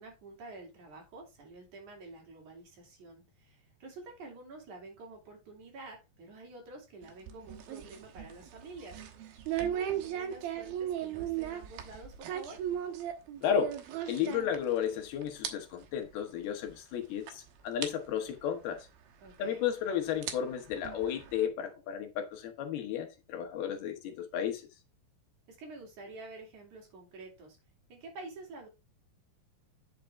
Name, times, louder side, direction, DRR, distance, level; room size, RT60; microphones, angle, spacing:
voice 1, 0.0-9.0 9.6-12.6 19.2-19.6 25.5-27.6 27.9-28.7, right 2 dB, 50° right, 3.8 m, -49 dB
sound 1, 7.0-15.0 15.2-15.5 15.8-16.0 16.7-16.8 17.3-17.4 17.8-17.9 19.3-19.4 20.0-21.5, right 10 dB, 70° right, 2.9 m, -37 dB
voice 2, 13.4-13.8 14.1-18.8 19.4-24.7, left 9 dB, 75° left, 3.0 m, -33 dB
8.9 x 6.7 x 3.5 m
omnidirectional pair, 4.7 m